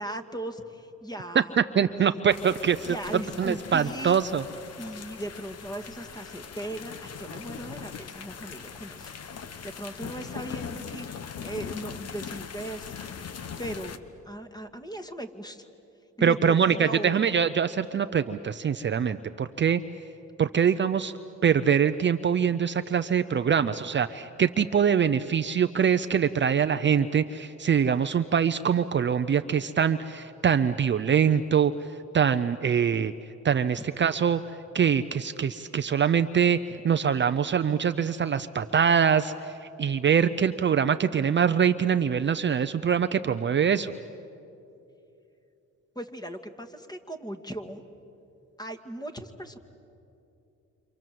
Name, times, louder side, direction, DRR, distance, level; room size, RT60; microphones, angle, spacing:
voice 1, 0.0-1.6 2.0-2.2 2.5-4.2 4.8-11.2 11.4-12.9 13.6-14.0 14.3-15.7 16.2-17.2 33.8-33.9 46.0-47.8 48.6-49.6, right 1 dB, 15° left, 7 dB, 2.0 m, -38 dB
voice 2, 1.7-3.0 3.4-4.4 16.2-19.8 20.4-21.1 21.4-31.7 32.1-33.1 33.4-34.4 34.7-39.5 39.8-43.9, right 7 dB, 40° right, 10 dB, 0.7 m, -24 dB
sound 1, 2.3-14.0, left 7 dB, 55° left, 1.3 m, -41 dB
29.0 x 26.0 x 7.7 m, 2.7 s
cardioid pair, 90°, 30 cm